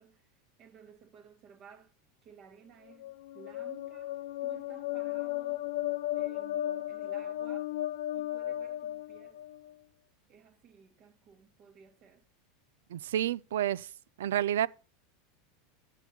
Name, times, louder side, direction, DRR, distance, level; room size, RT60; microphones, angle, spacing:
voice 1, 0.0-1.9 2.2-5.7 6.1-7.8 8.2-9.4 10.3-12.2, right 7 dB, 45° right, 1.8 m, -56 dB
sound 1, 2.9-9.7, left 14 dB, 75° left, 0.5 m, -35 dB
voice 2, 12.9-13.9 14.2-14.7, right 11 dB, 90° right, 0.4 m, -29 dB
9.8 x 6.9 x 5.9 m
supercardioid pair, 125°, 0 cm